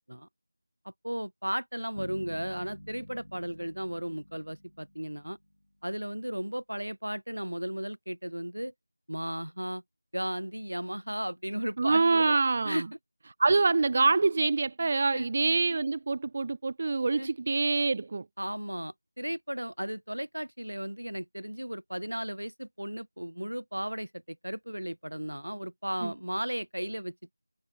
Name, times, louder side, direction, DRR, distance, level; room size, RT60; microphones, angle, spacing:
voice 1, 0.8-5.4 5.8-8.7 9.1-9.8 10.1-12.3 12.6-12.8 15.1-15.3 17.2-17.3 18.4-27.3, equal, 90° right, 2.9 m, -35 dB
sound 1, 2.0-5.7, left 1 dB, 85° left, 2.2 m, -48 dB
voice 2, 11.8-12.8 13.4-18.2 26.0-26.1, right 3 dB, 30° right, 0.3 m, -25 dB
figure-of-eight pair, 170°, 0 cm